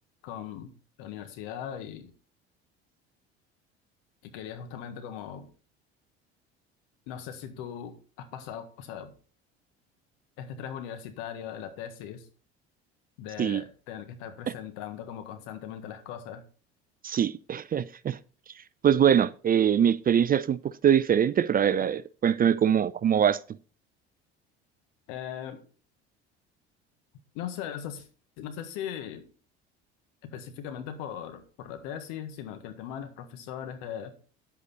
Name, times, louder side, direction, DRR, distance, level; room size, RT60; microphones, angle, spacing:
voice 1, 0.2-0.7 1.0-2.1 4.2-5.5 7.1-9.1 10.4-12.3 13.2-16.4 25.1-25.6 27.3-28.1 28.4-29.3 30.2-34.1, left 9 dB, 70° left, 1.7 m, -39 dB
voice 2, 17.0-18.2 18.8-23.4, right 9 dB, 30° right, 0.4 m, -23 dB
9.6 x 8.2 x 4.1 m
hypercardioid pair, 70°, 32 cm